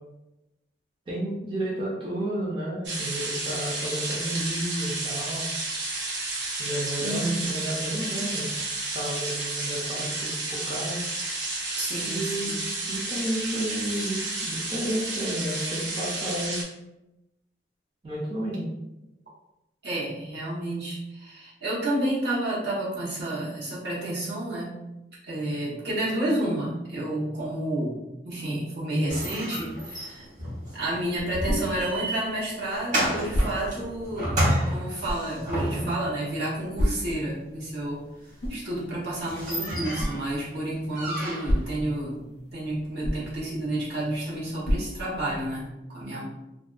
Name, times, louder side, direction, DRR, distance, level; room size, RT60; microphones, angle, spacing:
voice 1, 1.1-5.4 6.6-8.5 8.8-11.0 12.1-12.5 12.9-14.2 14.4-16.6 18.0-18.7, right 1 dB, 30° right, -7 dB, 0.5 m, -31 dB
sound 1, 2.8-16.6, right 2 dB, 90° right, 0.6 m, -31 dB
voice 2, 7.0-7.5 11.8-12.6 19.8-24.8 25.2-28.0 28.2-30.3 30.7-34.4 34.7-38.0 38.5-42.2 42.5-46.2, right 1 dB, 70° right, -7 dB, 1.0 m, -30 dB
sound 2, 29.1-36.1 38.5-38.6 38.9-39.0 39.2-40.3 40.9-41.7, equal, 45° right, 1.0 m, -30 dB
sound 3, 30.8-45.7, equal, 75° left, 0.5 m, -34 dB
2.5 x 2.2 x 2.4 m, 0.94 s
head